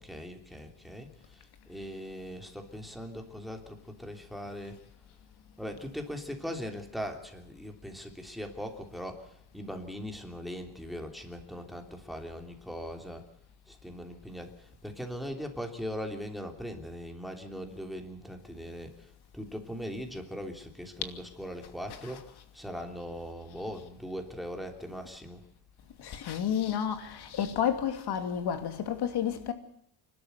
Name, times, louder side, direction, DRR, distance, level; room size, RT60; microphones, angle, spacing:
voice 1, 0.0-1.4 1.7-4.8 5.6-13.2 13.7-19.1 19.3-25.4, equal, ahead, 3.2 m, -40 dB
voice 2, 26.0-29.5, left 9 dB, 65° left, 2.8 m, -31 dB
27.0 x 12.5 x 8.1 m
cardioid pair, 115°, 42 cm